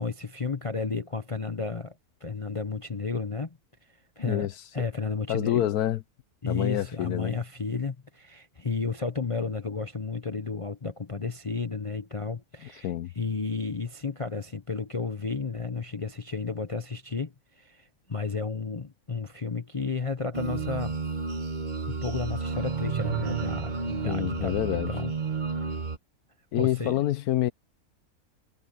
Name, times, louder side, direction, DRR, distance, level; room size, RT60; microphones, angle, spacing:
voice 1, 0.0-2.0 2.2-3.6 4.2-5.6 6.4-21.0 21.9-25.1 25.4-25.8 26.6-27.0, left 4 dB, 30° left, 0.6 m, -32 dB
voice 2, 4.2-4.5 5.3-6.0 6.5-7.4 12.8-13.1 24.0-24.9 26.5-27.5, left 12 dB, 75° left, 1.1 m, -27 dB
sound 1, 20.3-26.0, right 4 dB, 35° right, 1.0 m, -31 dB
omnidirectional pair, 1.6 m